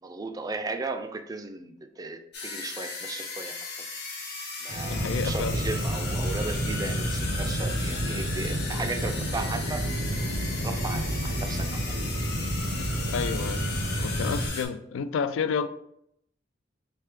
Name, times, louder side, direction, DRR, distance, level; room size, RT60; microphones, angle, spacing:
voice 1, 0.0-3.6 4.6-9.9 10.2-10.3 10.6-11.9, right 3 dB, 20° right, 7 dB, 0.3 m, -36 dB
sound 1, 2.3-14.7, left 4 dB, 60° left, 0.9 m, -37 dB
sound 2, 4.7-14.5, right 1 dB, 75° right, 0.8 m, -30 dB
voice 2, 4.9-5.5 13.1-13.6 14.0-15.7, left 6 dB, 90° left, 13 dB, 0.3 m, -30 dB
3.4 x 3.2 x 3.2 m, 0.75 s
head